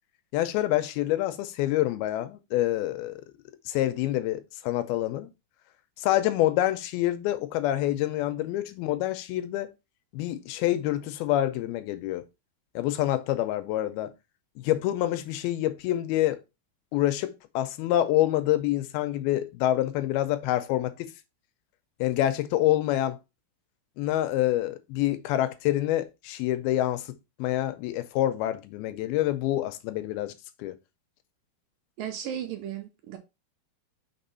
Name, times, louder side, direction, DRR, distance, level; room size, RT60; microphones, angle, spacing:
voice 1, 0.3-3.2 3.7-5.3 6.0-9.7 10.1-12.2 12.8-14.1 14.6-16.4 16.9-21.1 22.0-23.2 24.0-27.1 27.4-30.3 30.6-30.7, left 14 dB, 80° left, 2.4 m, -27 dB
voice 2, 32.0-33.2, right 9 dB, 75° right, 2.2 m, -35 dB
6.0 x 3.8 x 5.5 m
omnidirectional pair, 4.5 m